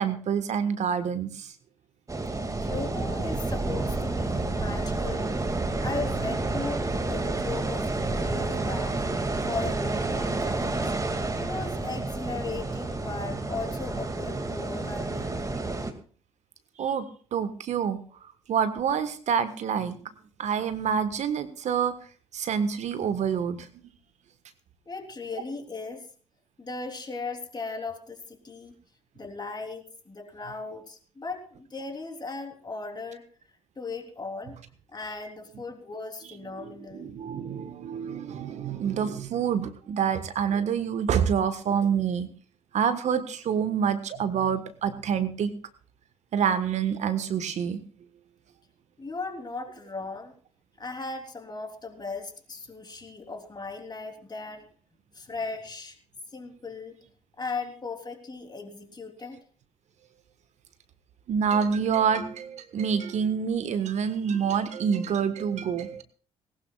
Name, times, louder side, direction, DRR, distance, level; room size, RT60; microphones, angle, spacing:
voice 1, 0.0-1.5 16.8-17.0 17.3-18.0 18.5-20.0 20.4-21.9 22.3-23.7 36.6-42.3 42.7-45.5 46.3-47.8 61.3-66.0, right 7 dB, 55° right, 11 dB, 1.4 m, -27 dB
sound 1, 2.1-15.9, right 2 dB, 25° right, 2.2 m, -30 dB
voice 2, 2.6-5.3 5.8-9.0 9.5-10.8 11.4-15.4 24.9-26.1 26.6-28.7 29.2-33.3 33.8-34.6 34.9-37.1 49.0-50.3 50.8-54.7 55.1-56.0 56.3-57.0 57.4-59.4, left 3 dB, 30° left, 4 dB, 3.5 m, -37 dB
20.0 x 18.5 x 2.4 m, 0.42 s
hypercardioid pair, 45°, 14 cm